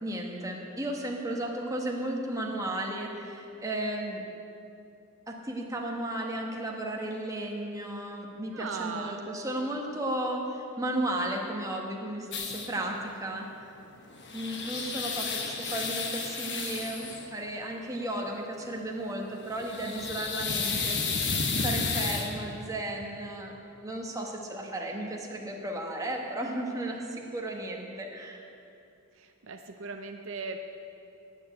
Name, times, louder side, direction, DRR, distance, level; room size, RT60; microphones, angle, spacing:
voice 1, 0.0-4.2 5.3-13.5 14.3-21.3 21.6-23.5 23.8-28.4, right 1 dB, 15° right, 0 dB, 1.4 m, -34 dB
voice 2, 8.5-9.2 29.2-30.6, right 4 dB, 65° right, 5 dB, 0.6 m, -38 dB
sound 1, 12.3-12.7 14.0-17.3 19.5-22.4, left 4 dB, 55° left, 1.3 m, -32 dB
9.8 x 9.0 x 8.2 m, 2.6 s
head